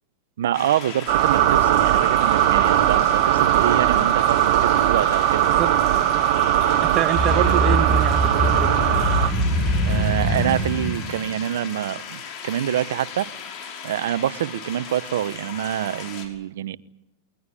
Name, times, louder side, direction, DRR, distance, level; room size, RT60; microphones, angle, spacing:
voice 1, 0.4-5.5 7.3-7.6 9.8-13.3 13.8-16.8, right 11 dB, 75° right, 1.0 m, -26 dB
sound 1, 0.5-16.3, left 7 dB, 45° left, 5.9 m, -37 dB
sound 2, 1.1-9.3, right 13 dB, 55° right, 2.9 m, -19 dB
voice 2, 5.5-6.3 6.8-8.8, right 12 dB, 35° right, 1.4 m, -27 dB
sound 3, 7.1-12.1, equal, 10° left, 7.7 m, -23 dB
22.0 x 20.5 x 10.0 m
hypercardioid pair, 125°, 0 cm